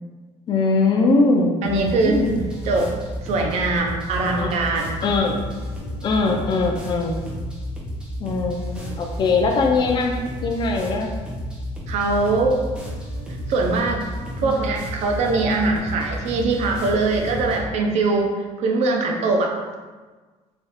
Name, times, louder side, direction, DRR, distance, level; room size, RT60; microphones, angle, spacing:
voice 1, 0.5-2.5 4.4-4.7 5.0-5.4 6.0-7.2 8.2-10.2 10.4-11.1 14.4-14.6, left 3 dB, 35° left, 2 dB, 0.4 m, -21 dB
sound 1, 1.6-17.6, equal, 5° right, 0.6 m, -32 dB
voice 2, 1.6-2.2 2.6-2.9 3.2-5.0 11.9-12.6 13.5-14.1 14.4-19.5, right 3 dB, 60° right, 2 dB, 0.6 m, -22 dB
3.3 x 2.4 x 4.1 m, 1.3 s
cardioid pair, 155°, 13 cm